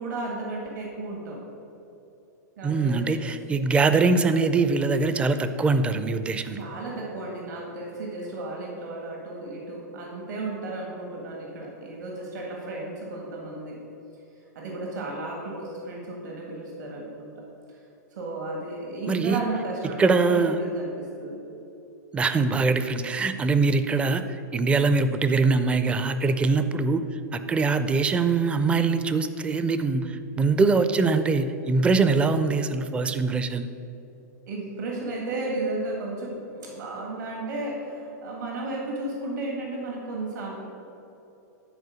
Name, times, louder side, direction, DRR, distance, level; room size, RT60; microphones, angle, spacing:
voice 1, 0.0-1.4 2.6-3.2 6.5-13.8 14.6-17.3 17.7-17.8 18.1-21.4 34.5-40.6, right 2 dB, 80° right, -2 dB, 2.0 m, -34 dB
voice 2, 2.6-6.6 19.1-19.4 20.0-20.6 22.1-24.2 24.5-27.0 27.3-33.7, right 4 dB, 10° right, 10 dB, 0.4 m, -23 dB
11.0 x 4.4 x 6.2 m, 2.9 s
hypercardioid pair, 140°, 10 cm